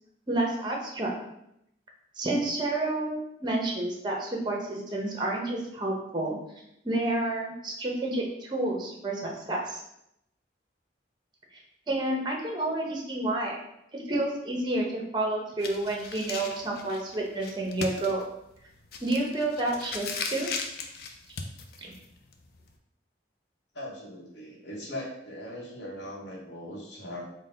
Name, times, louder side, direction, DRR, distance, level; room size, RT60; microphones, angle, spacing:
voice 1, 0.3-1.1 2.2-6.4 6.8-9.8 11.9-13.6 13.9-18.3 19.0-20.5 21.8-21.9, right 2 dB, 25° right, 0 dB, 0.6 m, -30 dB
sound 1, 15.6-22.7, left 4 dB, 55° left, 0.4 m, -38 dB
voice 2, 23.7-27.2, left 1 dB, 70° left, -2 dB, 0.9 m, -39 dB
3.9 x 2.1 x 3.8 m, 0.79 s
head